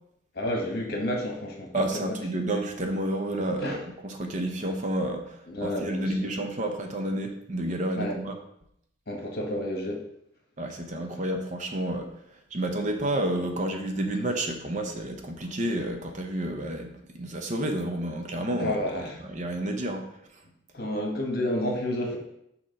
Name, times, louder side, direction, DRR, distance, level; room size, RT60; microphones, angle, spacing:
voice 1, 0.3-2.2 3.6-3.8 5.5-6.3 7.9-8.1 9.1-10.0 18.6-19.2 20.7-22.2, left 1 dB, 55° left, 0 dB, 1.3 m, -30 dB
voice 2, 1.7-8.3 10.6-20.4, right 1 dB, 40° right, 4 dB, 0.7 m, -30 dB
6.4 x 3.0 x 5.1 m, 0.76 s
head